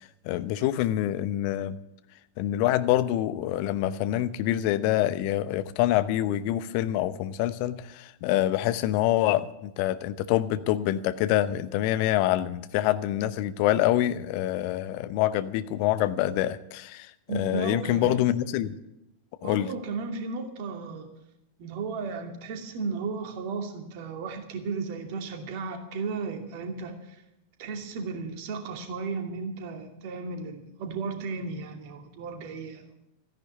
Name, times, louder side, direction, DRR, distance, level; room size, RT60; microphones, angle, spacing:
voice 1, 0.2-1.8 2.4-18.8 19.4-19.7, left 13 dB, 45° left, 13 dB, 0.9 m, -26 dB
voice 2, 17.3-18.3 19.4-21.1 21.6-27.2 27.6-33.0, right 4 dB, 45° right, 5 dB, 2.5 m, -34 dB
14.0 x 10.5 x 8.4 m, 0.87 s
figure-of-eight pair, 90°, 0 cm